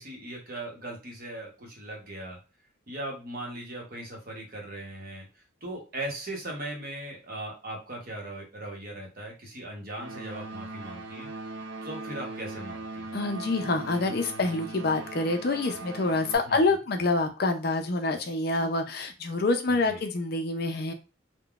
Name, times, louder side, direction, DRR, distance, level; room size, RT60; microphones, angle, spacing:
voice 1, 0.0-2.4 2.9-11.3 11.8-13.1 16.5-16.6 19.7-20.0, right 1 dB, 45° right, 0 dB, 0.8 m, -39 dB
sound 1, 9.9-16.4, right 2 dB, 70° right, 0.5 m, -40 dB
voice 2, 13.1-20.9, left 3 dB, 50° left, 5 dB, 0.4 m, -27 dB
3.6 x 2.1 x 2.3 m, 0.30 s
head